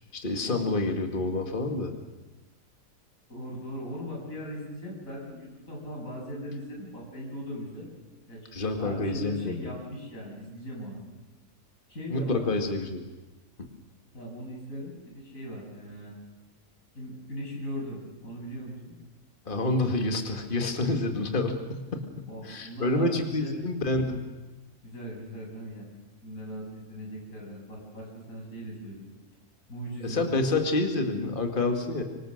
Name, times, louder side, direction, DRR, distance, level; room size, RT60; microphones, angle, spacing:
voice 1, 0.1-1.9 8.5-9.7 12.1-13.0 19.5-24.2 30.0-32.0, left 2 dB, 30° left, 4 dB, 2.2 m, -28 dB
voice 2, 3.3-7.9 8.3-11.0 11.9-12.4 14.1-16.1 16.9-18.9 22.3-23.6 24.8-25.9 26.2-29.1 29.7-30.3, equal, 55° left, -2 dB, 8.3 m, -39 dB
25.5 x 25.0 x 6.6 m, 1.2 s
omnidirectional pair, 1.7 m